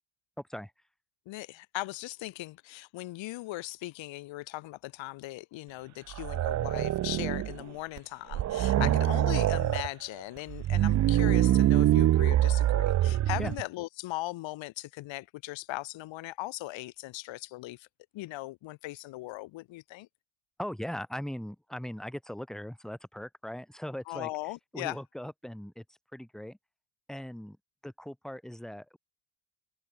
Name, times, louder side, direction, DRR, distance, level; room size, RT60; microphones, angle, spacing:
voice 1, 0.4-0.7 8.8-9.0 13.4-13.5 20.6-24.3 24.7-25.8 26.1-26.6 27.1-27.6 27.8-29.0, equal, ahead, 2.3 m, -39 dB
voice 2, 1.3-17.9 18.1-20.1 24.1-25.0, left 18 dB, 75° left, 1.0 m, -39 dB
sound 1, 6.1-7.6 8.0-8.1 8.3-9.9 10.5-13.6, right 13 dB, 40° right, 0.4 m, -25 dB
open air
cardioid pair, 160°, 46 cm